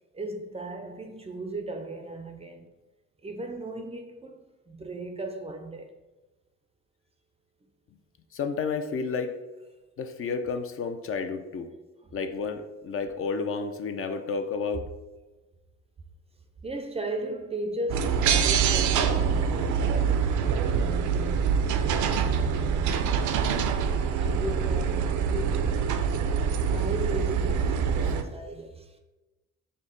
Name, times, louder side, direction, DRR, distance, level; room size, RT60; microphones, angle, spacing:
voice 1, 0.1-2.7 3.2-4.4 4.7-5.9 12.0-12.2 16.6-20.2 20.5-23.9 24.2-29.0, right 1 dB, 20° right, 0.4 m, -37 dB
voice 2, 8.3-9.3 10.0-11.7 12.1-14.8, left 5 dB, 45° left, 0.4 m, -31 dB
sound 1, 17.9-28.2, right 6 dB, 75° right, 0.4 m, -25 dB
5.2 x 2.1 x 3.7 m
cardioid pair, 90°, 30 cm